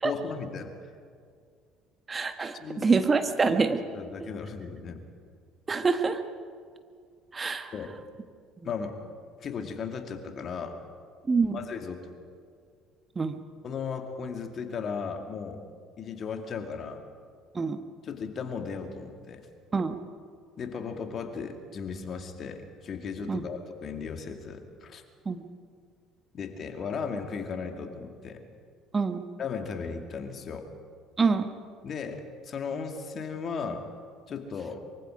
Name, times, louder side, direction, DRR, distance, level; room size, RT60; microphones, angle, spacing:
voice 1, 0.0-0.9 2.6-3.0 3.4-3.6 3.9-5.0 7.7-7.9 8.6-9.0 9.4-10.8 11.5-12.1 13.6-15.6 16.0-17.0 18.0-19.5 20.6-25.0 26.3-28.4 29.4-30.7 31.8-33.8 34.3-34.8, left 5 dB, 45° left, 5 dB, 2.3 m, -36 dB
voice 2, 2.1-3.8 4.2-4.3 5.7-6.2 7.3-7.7 11.3-11.6 13.1-13.4 17.5-17.8 19.7-20.0 23.3-23.4 25.2-25.5 28.9-29.2 31.2-31.5, right 4 dB, 30° right, 8 dB, 1.4 m, -26 dB
24.0 x 24.0 x 5.1 m, 2.1 s
hypercardioid pair, 60°, 0 cm